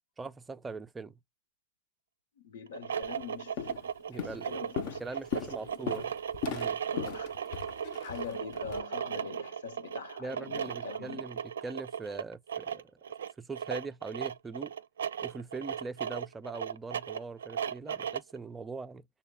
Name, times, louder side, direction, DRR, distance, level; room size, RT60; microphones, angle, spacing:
voice 1, 0.2-1.1 4.1-4.6 5.0-6.1 6.5-6.8 10.2-12.8 13.4-14.7 15.2-19.1, right 4 dB, 10° right, 0.4 m, -41 dB
voice 2, 2.4-6.1 6.9-7.3 8.0-11.2, left 6 dB, 75° left, 1.0 m, -44 dB
sound 1, 2.7-18.4, right 8 dB, 90° right, 0.5 m, -37 dB
Walk footsteps, 3.0-3.2 3.6-3.9 4.2-8.8, left 9 dB, 45° left, 0.7 m, -38 dB
6.5 x 2.2 x 3.5 m
hypercardioid pair, 140°, 0 cm